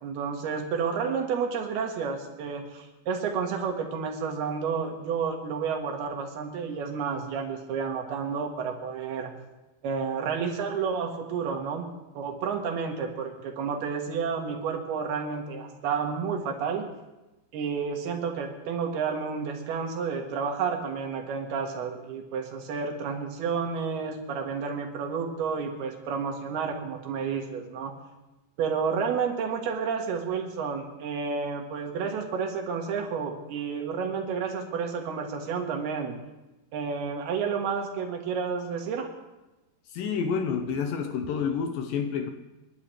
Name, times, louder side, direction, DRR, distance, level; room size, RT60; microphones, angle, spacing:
voice 1, 0.0-9.3 9.8-11.9 12.1-16.9 17.5-27.9 28.6-36.2 36.7-39.1, right 6 dB, 70° right, 2 dB, 3.6 m, -30 dB
voice 2, 39.9-42.3, left 6 dB, 75° left, 6 dB, 2.2 m, -29 dB
29.0 x 11.0 x 3.3 m, 1.0 s
omnidirectional pair, 4.8 m